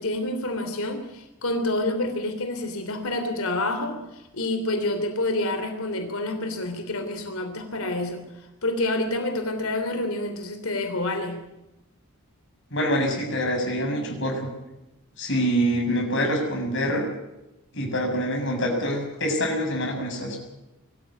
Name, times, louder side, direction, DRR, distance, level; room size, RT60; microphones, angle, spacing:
voice 1, 0.0-11.4, left 2 dB, 70° left, 6 dB, 3.2 m, -28 dB
voice 2, 12.7-14.5 15.2-17.1 17.7-20.4, equal, 55° left, 1 dB, 7.0 m, -25 dB
23.5 x 13.5 x 9.9 m, 0.94 s
head